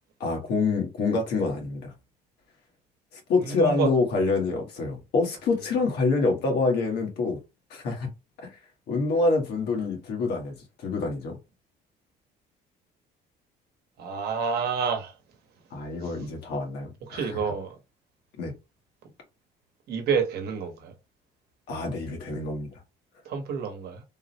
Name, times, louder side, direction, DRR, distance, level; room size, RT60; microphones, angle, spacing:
voice 1, 0.2-1.9 3.1-7.4 7.7-8.1 8.4-8.5 8.9-11.4 15.7-17.4 18.4-18.5 21.7-22.7, left 3 dB, 75° left, 1.3 m, -26 dB
voice 2, 3.4-3.9 14.0-15.2 16.0-16.1 17.1-17.8 19.9-20.9 23.2-24.0, right 6 dB, 70° right, 0.9 m, -29 dB
3.6 x 2.0 x 2.8 m
cardioid pair, 110°, 17 cm